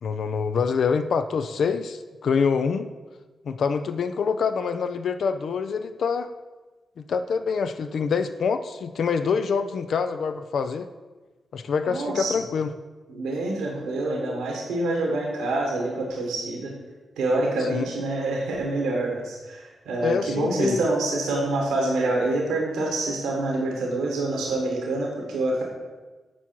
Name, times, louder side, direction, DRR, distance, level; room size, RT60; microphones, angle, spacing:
voice 1, 0.0-2.9 3.5-6.3 7.0-10.9 11.5-12.7 17.7-17.9 20.0-20.8, left 5 dB, 70° left, 9 dB, 0.4 m, -25 dB
voice 2, 11.8-12.4 13.1-16.8 17.2-25.6, right 2 dB, 85° right, -1 dB, 1.3 m, -26 dB
8.2 x 4.7 x 4.4 m, 1.2 s
supercardioid pair, 40°, 0 cm